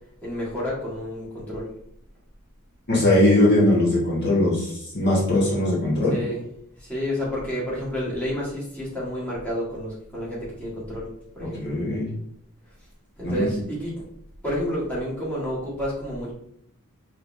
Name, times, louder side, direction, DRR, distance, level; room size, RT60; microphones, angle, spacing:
voice 1, 0.2-1.7 6.1-6.4 6.8-11.1 11.3-11.8 13.2-13.9 14.4-16.3, equal, 5° left, -8 dB, 1.7 m, -30 dB
voice 2, 2.9-6.2 11.5-12.1 13.2-13.5, left 1 dB, 50° left, -6 dB, 1.5 m, -20 dB
5.4 x 3.2 x 2.7 m, 0.69 s
head